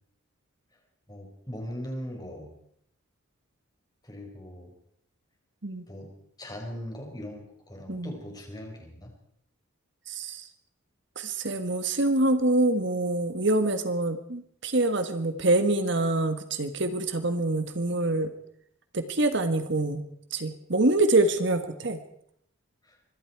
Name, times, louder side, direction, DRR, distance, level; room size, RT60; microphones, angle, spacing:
voice 1, 1.1-2.5 4.0-4.7 5.9-6.1 6.4-9.1 22.8-23.0, equal, 20° left, 1 dB, 5.6 m, -39 dB
voice 2, 10.1-10.4 11.1-18.3 18.9-20.0 20.3-22.0, right 2 dB, 55° right, 9 dB, 1.5 m, -25 dB
26.0 x 22.0 x 4.7 m, 0.71 s
head